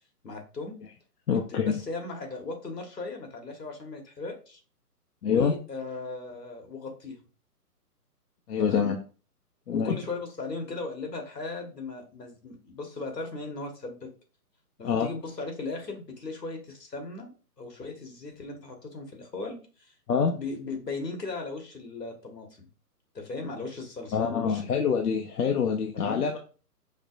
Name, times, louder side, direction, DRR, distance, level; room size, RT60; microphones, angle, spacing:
voice 1, 0.2-0.7 1.3-4.6 5.2-7.2 8.6-8.9 9.7-14.1 14.8-19.9 20.3-22.7 23.1-24.7 25.9-26.2, left 3 dB, 85° left, 3 dB, 1.5 m, -37 dB
voice 2, 1.3-1.8 5.2-5.5 8.5-9.0 9.7-10.0 14.8-15.1 20.1-20.3 24.1-26.4, left 6 dB, 70° left, 2 dB, 0.7 m, -25 dB
5.3 x 2.8 x 2.5 m, 0.37 s
figure-of-eight pair, 140°, 48 cm